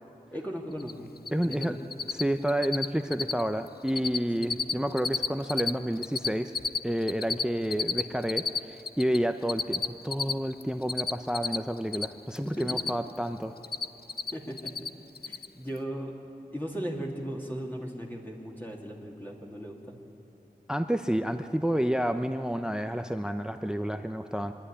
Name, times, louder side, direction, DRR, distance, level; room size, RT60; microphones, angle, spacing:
voice 1, 0.3-1.1 1.4-1.8 4.4-4.7 12.4-12.7 14.3-14.7 15.2-16.1 16.5-20.0, equal, 10° left, -2 dB, 2.3 m, -37 dB
Cricket, 0.8-0.9 1.2-1.6 1.9-2.2 2.5-2.9 3.1-3.4 3.7-4.2 4.4-5.7 6.0-9.2 9.5-12.1 12.4-13.2 13.4-14.3 14.6-14.9 15.2-15.5, left 5 dB, 75° left, 0.5 m, -30 dB
voice 2, 1.3-1.7 2.1-6.5 6.8-13.5 20.7-24.5, equal, 5° right, 8 dB, 0.6 m, -30 dB
26.0 x 10.5 x 10.0 m, 2.9 s
wide cardioid pair, 40°, 16 cm